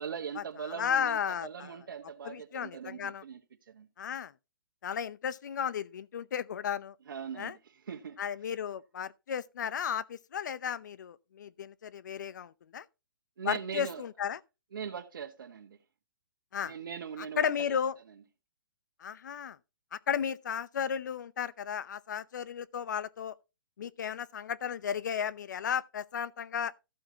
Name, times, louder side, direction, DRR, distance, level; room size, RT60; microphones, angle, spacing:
voice 1, 0.0-3.9 7.0-8.2 13.4-14.0 14.7-15.8 16.6-17.8, right 7 dB, 70° right, 1.5 m, -41 dB
voice 2, 0.8-1.7 2.2-3.2 4.0-4.3 4.8-6.9 7.4-7.5 8.2-12.8 13.4-14.4 16.5-16.7 17.4-17.9 19.0-19.6 19.9-23.3 23.8-26.7, left 8 dB, 55° left, 0.7 m, -34 dB
14.5 x 8.4 x 2.9 m
hypercardioid pair, 175°, 12 cm